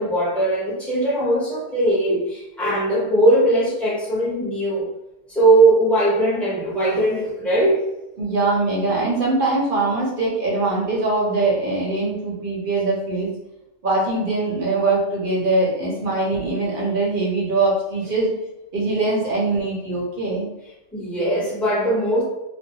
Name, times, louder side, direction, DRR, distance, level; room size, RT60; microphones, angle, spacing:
voice 1, 0.0-4.9 5.3-7.8 20.9-22.2, right 2 dB, ahead, -7 dB, 0.7 m, -19 dB
voice 2, 8.2-13.3 13.8-18.3 18.7-20.5, right 2 dB, 50° right, -4 dB, 0.8 m, -22 dB
2.5 x 2.0 x 2.7 m, 0.96 s
omnidirectional pair, 1.3 m